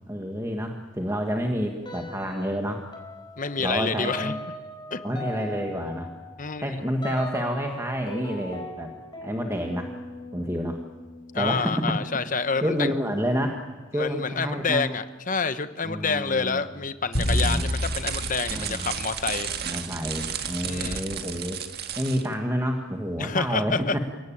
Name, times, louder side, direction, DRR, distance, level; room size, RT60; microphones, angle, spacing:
voice 1, 0.1-2.9 3.6-4.4 5.0-6.1 6.6-8.9 9.2-9.9 10.3-10.8 11.4-11.9 12.6-13.6 13.9-14.8 15.8-16.6 17.3-17.7 18.5-18.9 19.6-21.6 22.0-23.9, equal, 15° right, 3 dB, 1.6 m, -29 dB
sound 1, 1.8-2.6 2.9-13.3, left 1 dB, 20° left, 4.4 m, -40 dB
voice 2, 3.4-4.3 4.9-5.0 6.4-6.7 11.3-12.9 13.9-19.5 20.6-21.0 23.2-24.0, left 4 dB, 40° left, 11 dB, 1.1 m, -28 dB
sound 2, 17.1-19.6, left 1 dB, 85° left, 4.6 m, -28 dB
sound 3, 17.1-22.3, right 7 dB, 50° right, 1.8 m, -33 dB
29.5 x 17.5 x 8.8 m, 1.4 s
head